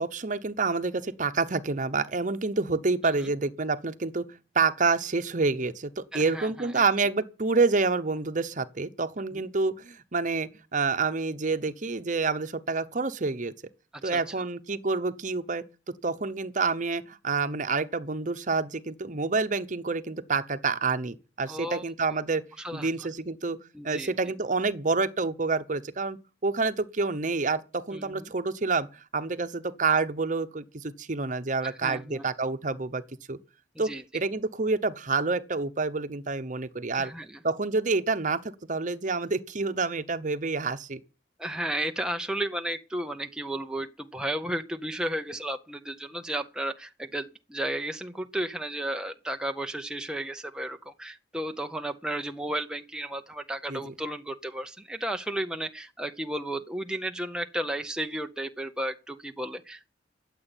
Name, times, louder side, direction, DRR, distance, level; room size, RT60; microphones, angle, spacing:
voice 1, 0.0-4.3 4.5-13.5 14.0-15.6 16.0-22.4 22.7-23.6 23.8-28.9 29.1-33.0 33.3-33.4 33.8-37.1 37.4-41.0 53.7-53.9, right 4 dB, 45° right, 0.9 m, -28 dB
voice 2, 6.1-6.8 14.0-14.3 21.5-21.8 22.6-23.1 23.7-24.1 27.9-28.2 31.6-32.3 33.8-34.0 36.9-37.4 41.4-59.9, right 1 dB, 5° right, 0.6 m, -33 dB
13.0 x 7.8 x 8.9 m
head